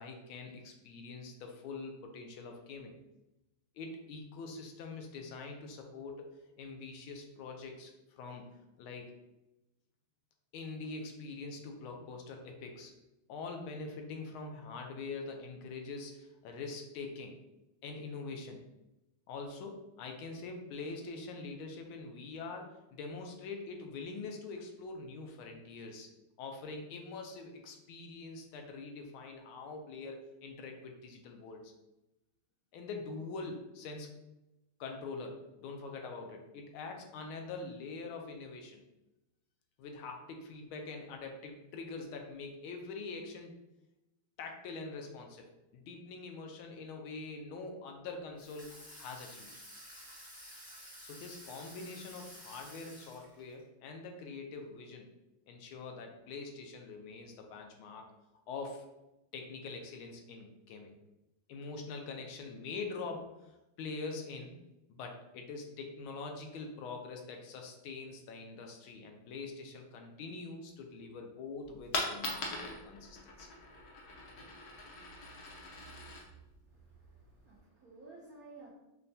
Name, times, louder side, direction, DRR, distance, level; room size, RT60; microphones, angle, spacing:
voice 1, 0.0-3.0 3.7-6.3 6.6-9.1 10.5-12.9 13.3-17.4 17.8-18.6 19.3-26.1 26.4-31.7 32.7-34.1 34.8-38.8 39.8-43.6 44.4-45.5 45.7-49.5 51.0-55.1 55.5-58.1 58.5-58.9 59.3-60.9 61.5-64.6 64.9-73.5, left 4 dB, 80° left, 3 dB, 1.4 m, -44 dB
Water tap faucet / Sink (filling or washing), 48.4-53.6, equal, 20° left, 0.7 m, -52 dB
Coin (dropping), 71.6-77.6, left 2 dB, 65° left, 1.0 m, -42 dB
voice 2, 76.7-78.7, right 3 dB, 70° right, -6 dB, 0.8 m, -55 dB
5.4 x 2.2 x 2.6 m, 0.94 s
omnidirectional pair, 2.3 m